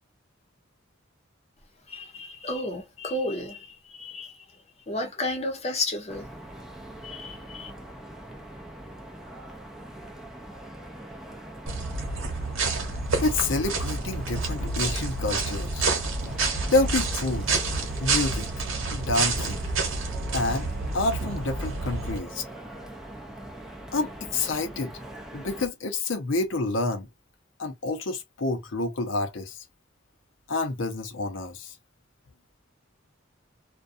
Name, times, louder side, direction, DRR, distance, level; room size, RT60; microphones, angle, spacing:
voice 1, 1.9-4.4 4.9-6.3 7.0-7.7, left 2 dB, 35° left, 0.8 m, -32 dB
sound 1, 6.1-25.7, right 1 dB, ahead, 0.6 m, -42 dB
sound 2, 11.7-22.2, right 3 dB, 85° right, 1.1 m, -29 dB
voice 2, 13.1-15.9 16.2-16.4 16.7-17.5 17.8-18.5 18.9-19.6 20.3-20.7 20.9-22.4 23.9-24.9 25.3-27.1 27.6-29.6 30.5-31.7, left 2 dB, 70° left, 0.7 m, -28 dB
2.4 x 2.3 x 2.5 m
head